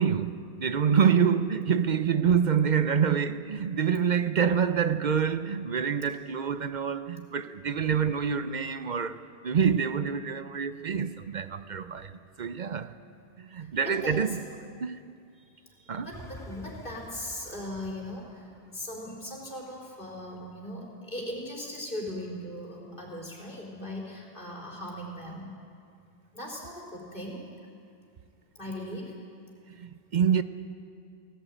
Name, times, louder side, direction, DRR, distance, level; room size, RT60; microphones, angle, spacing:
voice 1, 0.0-12.9 13.4-14.4 14.8-15.0 15.9-16.1 29.8-30.4, right 7 dB, 50° right, 0.7 m, -26 dB
voice 2, 13.6-14.4 15.4-25.5 26.3-27.4 28.5-29.2, left 1 dB, 50° left, 4.3 m, -39 dB
sound 1, 16.1-21.1 21.6-21.7, left 1 dB, 5° left, 2.3 m, -50 dB
17.5 x 17.0 x 9.1 m
omnidirectional pair, 1.1 m